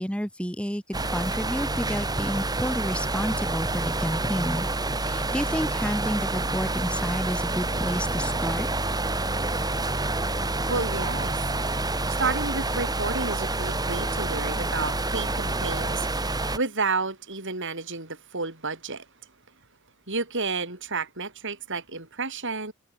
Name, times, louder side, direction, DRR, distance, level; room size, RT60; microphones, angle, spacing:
voice 1, 0.0-4.7 5.0-8.7, equal, 5° left, 7.5 m, -30 dB
sound 1, 0.9-16.6, right 2 dB, 15° right, 3.6 m, -28 dB
voice 2, 10.7-11.4 12.1-19.1 20.1-22.7, right 4 dB, 55° right, 5.9 m, -31 dB
head